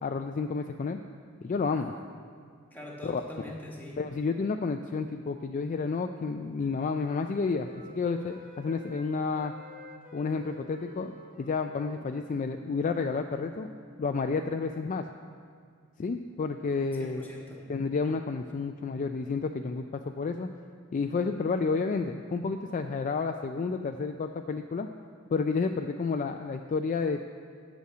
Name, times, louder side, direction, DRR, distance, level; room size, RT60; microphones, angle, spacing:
voice 1, 0.0-1.0 1.4-1.9 3.0-3.2 4.0-9.5 10.1-13.7 14.0-15.0 16.0-17.3 17.7-20.5 20.9-24.9 25.3-27.3, left 4 dB, 35° left, 6 dB, 0.3 m, -30 dB
voice 2, 2.7-4.0 16.9-17.7, left 1 dB, 10° left, -2 dB, 1.4 m, -43 dB
Wind instrument woodwind instrument, 5.4-9.1 9.3-14.6, left 3 dB, 45° right, 1.3 m, -52 dB
8.2 x 6.3 x 7.8 m, 2.1 s
head